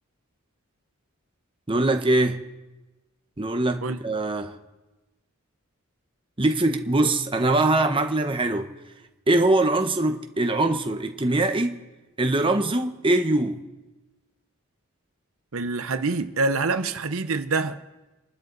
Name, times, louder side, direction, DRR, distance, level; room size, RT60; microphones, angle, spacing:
voice 1, 1.7-2.4 3.4-4.5 6.4-8.7 9.3-11.8 12.2-13.6, right 2 dB, 25° right, 1.1 m, -22 dB
voice 2, 15.5-17.8, right 3 dB, 80° right, 0.9 m, -26 dB
29.5 x 12.0 x 4.1 m
head